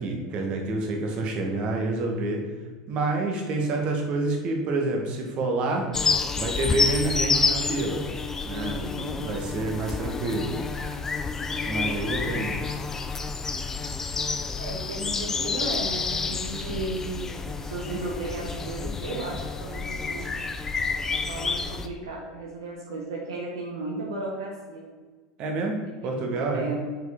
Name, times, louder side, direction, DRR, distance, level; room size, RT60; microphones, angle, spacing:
voice 1, 0.0-2.4 2.9-5.9 6.4-8.0 8.4-8.8 9.2-10.6 11.7-12.6 25.4-26.6, right 2 dB, 45° right, 1 dB, 1.3 m, -28 dB
sound 1, 5.9-21.9, left 4 dB, 20° left, 0.5 m, -29 dB
voice 2, 8.7-9.4 12.0-12.4 14.6-20.3 21.3-24.9 26.1-26.8, right 2 dB, 70° right, -1 dB, 1.0 m, -35 dB
6.1 x 4.7 x 3.6 m, 1.4 s
figure-of-eight pair, 80°, 2 cm